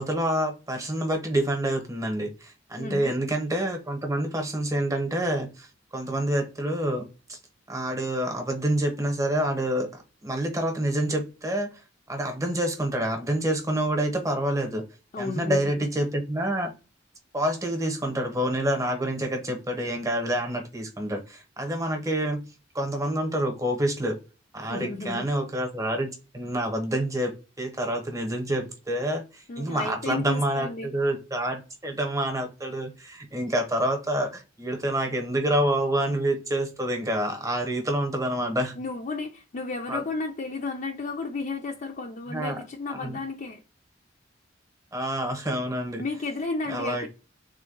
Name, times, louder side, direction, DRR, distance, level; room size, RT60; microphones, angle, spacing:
voice 1, 0.0-5.7 5.9-7.4 7.7-11.7 12.1-14.8 15.2-16.7 17.3-22.4 22.7-24.2 24.5-38.8 39.9-40.0 42.3-42.6 42.9-43.2 44.9-46.0 46.7-47.1, right 1 dB, 20° right, 0.9 m, -27 dB
voice 2, 2.8-3.2 15.1-15.9 24.6-25.3 29.5-30.9 38.8-43.6 46.0-47.1, left 3 dB, 45° left, 0.4 m, -33 dB
3.6 x 2.2 x 3.6 m
head